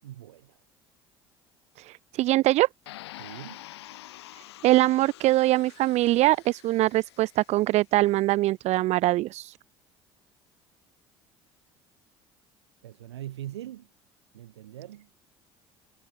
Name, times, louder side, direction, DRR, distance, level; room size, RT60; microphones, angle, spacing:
voice 1, 0.0-0.6 3.2-3.6 12.8-13.9 14.3-15.1, right 13 dB, 90° right, 6.9 m, -41 dB
voice 2, 1.8-2.7 4.6-9.6, right 17 dB, 55° right, 0.4 m, -23 dB
sound 1, 2.9-7.9, left 16 dB, 85° left, 5.1 m, -47 dB
hypercardioid pair, 65°, 13 cm